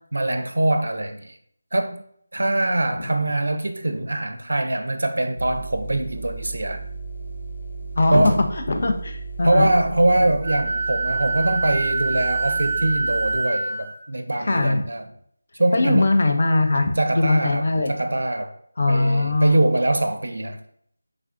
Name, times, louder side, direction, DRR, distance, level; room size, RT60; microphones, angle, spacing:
voice 1, 0.1-1.4 1.7-2.0 2.3-6.8 8.1-8.4 9.4-15.1 15.5-16.1 17.0-18.5 18.9-20.6, right 1 dB, 75° right, 7 dB, 0.4 m, -23 dB
sound 1, 5.4-13.4, right 3 dB, 85° left, 0.6 m, -35 dB
voice 2, 8.0-9.7 14.4-14.8 15.7-17.9 18.8-19.6, left 2 dB, 45° left, 5 dB, 0.4 m, -20 dB
Wind instrument woodwind instrument, 10.4-13.9, right 3 dB, 10° right, 0.5 m, -25 dB
3.2 x 2.4 x 2.5 m, 0.67 s
figure-of-eight pair, 175°, 0 cm